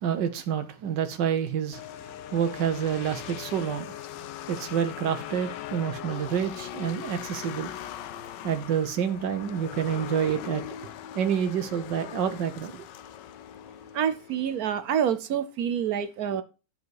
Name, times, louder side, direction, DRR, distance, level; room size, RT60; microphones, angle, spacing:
voice 1, 0.0-3.8 4.5-7.9 8.4-10.6 11.1-12.9, right 8 dB, 85° right, 1.7 m, -28 dB
sound 1, 1.7-14.8, left 11 dB, 85° left, 1.3 m, -40 dB
voice 2, 13.9-16.4, right 8 dB, 65° right, 1.2 m, -27 dB
10.5 x 5.5 x 4.7 m
omnidirectional pair, 1.9 m